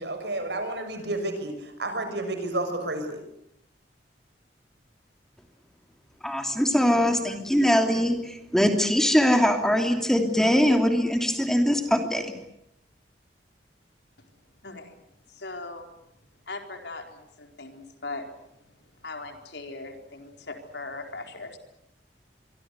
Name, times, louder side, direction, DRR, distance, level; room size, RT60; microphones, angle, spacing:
voice 1, 0.0-3.2, right 2 dB, 70° right, 7 dB, 6.4 m, -31 dB
voice 2, 6.2-12.3, equal, 5° left, 5 dB, 3.0 m, -22 dB
voice 3, 15.4-15.8 16.5-17.0 17.6-18.2 19.0-21.6, left 3 dB, 75° left, 5 dB, 4.2 m, -38 dB
25.5 x 24.0 x 8.3 m, 0.82 s
head